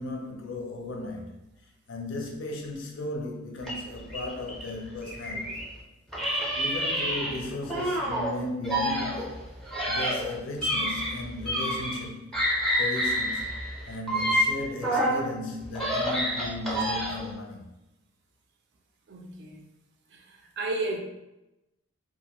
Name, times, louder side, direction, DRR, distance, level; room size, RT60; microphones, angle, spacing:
voice 1, 0.0-1.4 1.9-5.7 6.3-9.4 9.9-12.3 12.8-13.5 13.9-17.7, left 2 dB, 65° left, 0.5 m, -36 dB
sound 1, 3.6-5.7 6.1-8.3 8.6-12.1 12.3-15.2 15.6-17.3, equal, ahead, 0.5 m, -28 dB
voice 2, 19.1-19.6 20.1-21.0, right 2 dB, 55° right, 0.4 m, -33 dB
2.4 x 2.3 x 2.9 m
head